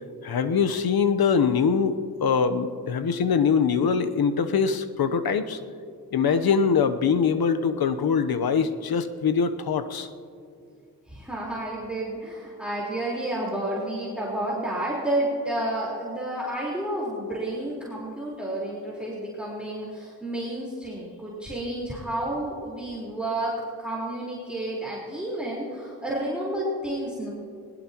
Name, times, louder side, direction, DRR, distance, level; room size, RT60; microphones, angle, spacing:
voice 1, 0.2-5.6 6.1-10.1, left 6 dB, 70° left, 9 dB, 1.0 m, -23 dB
voice 2, 11.1-27.3, right 1 dB, 5° right, -5 dB, 4.3 m, -30 dB
21.5 x 20.0 x 3.0 m, 2.3 s
cardioid pair, 55°, 38 cm